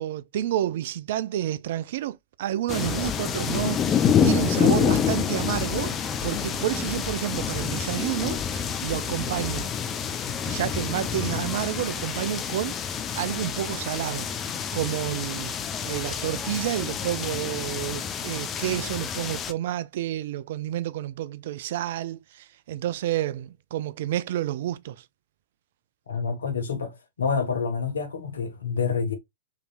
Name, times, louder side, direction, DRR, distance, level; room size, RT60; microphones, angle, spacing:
voice 1, 0.0-9.7 10.4-14.3 14.7-15.5 15.8-25.0, right 12 dB, 55° right, 0.4 m, -30 dB
sound 1, 2.7-19.5, left 7 dB, 25° left, 0.7 m, -28 dB
sound 2, 2.8-9.6, left 2 dB, 10° right, 1.8 m, -39 dB
voice 2, 26.1-29.1, left 5 dB, 75° left, 1.5 m, -28 dB
4.9 x 3.2 x 2.4 m
figure-of-eight pair, 105°, 0 cm